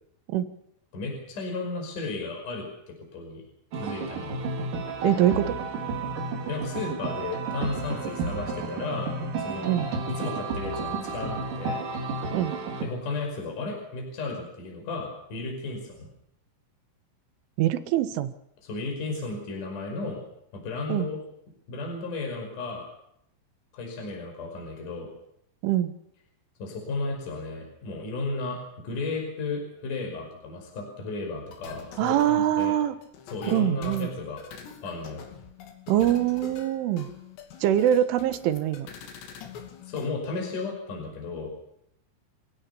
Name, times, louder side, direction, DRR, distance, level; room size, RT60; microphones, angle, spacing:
voice 1, 0.9-3.4 3.7-4.3 6.5-9.8 10.1-11.8 12.8-16.1 18.6-20.2 20.5-21.2 21.7-22.9 23.7-25.1 26.6-28.6 28.8-32.8 33.3-34.4 34.8-35.2 39.9-41.5, left 3 dB, 40° left, 2 dB, 6.7 m, -34 dB
sound 1, 3.7-12.8, right 3 dB, 45° right, 4.1 m, -32 dB
voice 2, 5.0-5.6 9.6-9.9 12.3-12.6 17.6-18.3 20.9-21.1 25.6-25.9 32.0-33.0 33.5-34.1 35.9-37.1 37.6-38.9, right 11 dB, 75° right, 10 dB, 3.7 m, -24 dB
sound 2, 31.5-40.1, left 6 dB, 60° left, 4.6 m, -45 dB
30.0 x 17.0 x 7.0 m, 0.75 s
omnidirectional pair, 5.9 m